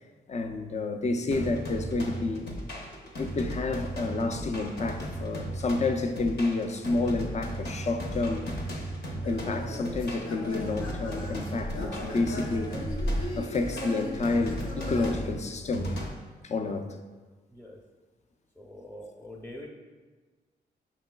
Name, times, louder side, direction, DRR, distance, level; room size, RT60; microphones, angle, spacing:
voice 1, 0.3-2.5 3.2-8.4 9.3-12.8 13.4-15.9 16.4-17.0, left 3 dB, 35° left, 6 dB, 0.4 m, -29 dB
sound 1, 1.3-16.1, equal, 60° left, 0.8 m, -36 dB
sound 2, 9.2-15.1, left 1 dB, 85° left, 0.7 m, -36 dB
voice 2, 18.6-19.7, left 1 dB, ahead, -2 dB, 0.7 m, -44 dB
5.4 x 3.1 x 2.2 m, 1.4 s
supercardioid pair, 50°, 20 cm